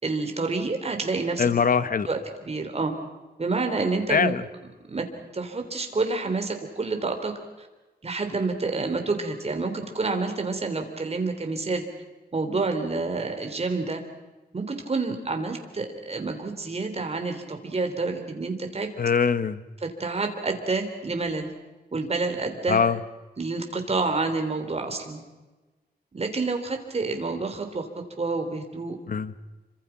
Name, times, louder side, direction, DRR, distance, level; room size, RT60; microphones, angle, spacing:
voice 1, 0.0-1.4 2.1-2.9 3.4-4.3 4.9-5.1 5.3-7.3 7.6-7.7 8.0-11.8 12.3-14.0 14.5-18.9 19.8-21.5 21.9-22.8 23.4-25.2 26.1-27.9 28.2-29.0, right 3 dB, 40° right, 5 dB, 3.6 m, -28 dB
voice 2, 1.4-2.1 4.1-4.4 19.0-19.6 22.7-23.0 29.1-29.3, left 6 dB, 55° left, 14 dB, 1.1 m, -22 dB
28.5 x 25.0 x 6.0 m, 1.2 s
wide cardioid pair, 135°, 17 cm